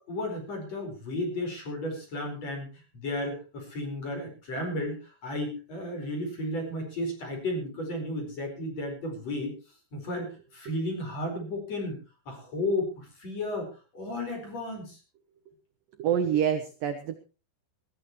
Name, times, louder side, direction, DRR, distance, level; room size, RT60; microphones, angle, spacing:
voice 1, 0.1-9.5 9.9-12.0 12.3-15.0, left 1 dB, 35° left, 3 dB, 5.7 m, -33 dB
voice 2, 16.0-17.2, right 8 dB, 75° right, 8 dB, 2.0 m, -26 dB
22.0 x 13.5 x 3.1 m, 0.33 s
omnidirectional pair, 5.5 m